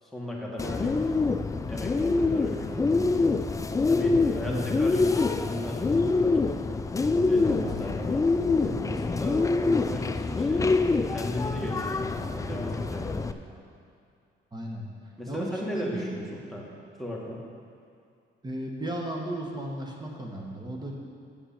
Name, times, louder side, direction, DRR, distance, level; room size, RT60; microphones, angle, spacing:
voice 1, 0.0-1.3 1.7-3.4 3.9-6.4 7.1-10.7 11.1-13.4 15.2-16.7 17.0-17.4, left 1 dB, ahead, -4 dB, 1.9 m, -36 dB
Bird, 0.6-13.3, left 3 dB, 15° left, 0.3 m, -25 dB
voice 2, 4.5-4.9 7.6-7.9 13.5-13.6 14.5-14.8 15.3-16.0 18.4-20.9, right 1 dB, 20° right, -1 dB, 1.4 m, -35 dB
7.9 x 6.8 x 5.9 m, 2.3 s
cardioid pair, 90°, 20 cm